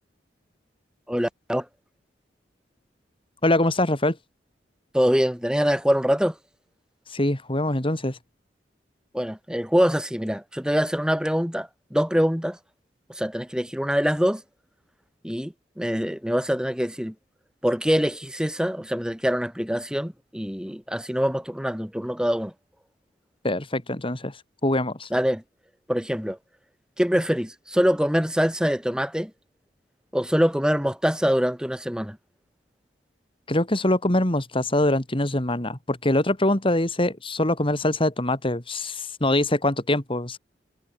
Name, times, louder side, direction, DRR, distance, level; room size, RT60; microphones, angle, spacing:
voice 1, 1.1-1.7 4.9-6.3 9.1-12.6 13.1-14.4 15.2-17.1 17.6-22.5 25.1-25.4 25.9-26.4 27.0-29.3 30.1-32.2, equal, 5° right, 3.8 m, -24 dB
voice 2, 3.4-4.2 7.1-8.2 23.4-25.1 33.5-40.4, left 1 dB, 30° left, 2.7 m, -24 dB
head